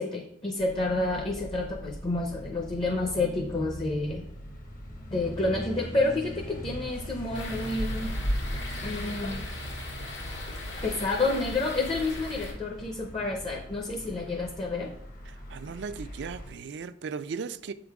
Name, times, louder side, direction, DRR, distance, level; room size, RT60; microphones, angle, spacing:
voice 1, 0.0-4.2 5.1-8.1 8.8-9.5 10.8-14.9, left 2 dB, 30° left, 0.7 m, -29 dB
sound 1, 0.6-16.5, equal, 50° left, 1.1 m, -41 dB
sound 2, 7.3-12.5, left 1 dB, 75° left, 1.5 m, -35 dB
voice 2, 15.3-17.7, right 5 dB, 65° right, 0.4 m, -37 dB
7.1 x 3.8 x 4.7 m
head